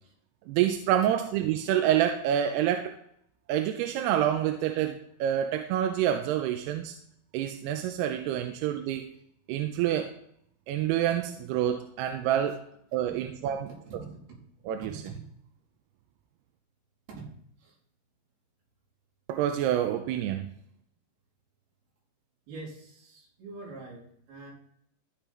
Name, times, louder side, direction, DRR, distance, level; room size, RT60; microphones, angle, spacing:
voice 1, 0.5-2.9 3.5-7.0 7.3-9.1 9.5-10.2 10.7-12.6 12.9-13.7 14.7-15.0 19.3-20.5, right 11 dB, 85° right, 5 dB, 2.6 m, -27 dB
voice 2, 13.2-13.6 13.9-14.2 14.8-15.2 17.1-17.3 17.6-17.8 22.5-24.5, right 3 dB, 65° right, -5 dB, 5.3 m, -44 dB
14.0 x 5.4 x 4.4 m, 0.70 s
omnidirectional pair, 4.9 m